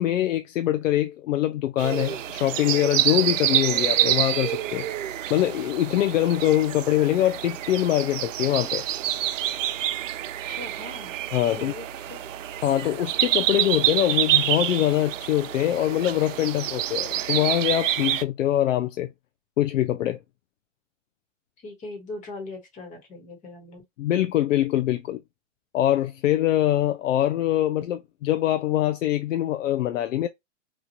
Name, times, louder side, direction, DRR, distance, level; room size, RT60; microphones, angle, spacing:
voice 1, 0.0-4.9 5.3-8.8 11.3-11.7 12.6-19.1 19.6-20.2 24.0-25.2 25.7-30.3, left 13 dB, 90° left, 0.5 m, -23 dB
sound 1, 1.8-18.2, right 12 dB, 80° right, 0.5 m, -27 dB
voice 2, 10.5-11.1 11.6-12.2 21.6-23.8, left 2 dB, 20° left, 1.1 m, -40 dB
3.1 x 2.3 x 2.7 m
hypercardioid pair, 140°, 37 cm